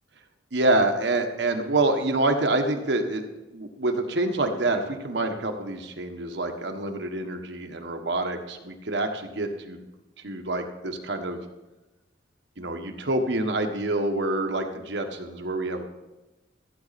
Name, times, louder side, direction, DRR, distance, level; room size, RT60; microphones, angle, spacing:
voice 1, 0.5-3.2 3.5-9.8 10.2-11.4 12.6-15.8, right 2 dB, 65° right, 5 dB, 1.4 m, -26 dB
15.5 x 9.5 x 4.3 m, 1.1 s
head